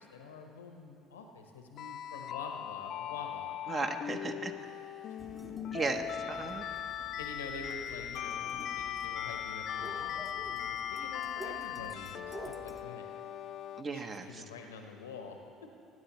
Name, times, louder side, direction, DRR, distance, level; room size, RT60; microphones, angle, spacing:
voice 1, 0.0-3.6 7.2-13.1 13.9-15.4, left 4 dB, 90° left, 4 dB, 1.0 m, -47 dB
sound 1, 1.8-13.8, left 10 dB, 55° left, 0.4 m, -39 dB
voice 2, 3.7-4.5 5.7-6.6 13.8-14.4, right 4 dB, 40° right, 6 dB, 1.0 m, -36 dB
sound 2, 5.2-12.8, right 1 dB, 15° right, 0.9 m, -50 dB
20.5 x 9.4 x 3.1 m, 2.5 s
hypercardioid pair, 60°, 0 cm